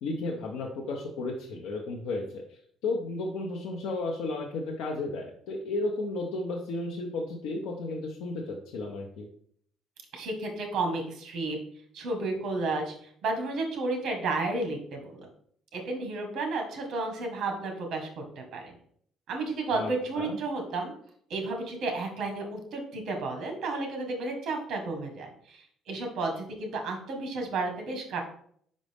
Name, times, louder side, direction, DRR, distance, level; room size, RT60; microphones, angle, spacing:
voice 1, 0.0-9.3 19.7-20.4, left 2 dB, 80° left, 0 dB, 0.8 m, -33 dB
voice 2, 10.1-11.6 11.9-12.9 13.2-15.2 15.7-18.7 19.3-20.9 21.3-28.2, right 3 dB, 55° right, 3 dB, 1.5 m, -32 dB
5.3 x 5.1 x 3.5 m, 0.64 s
cardioid pair, 165°, 0 cm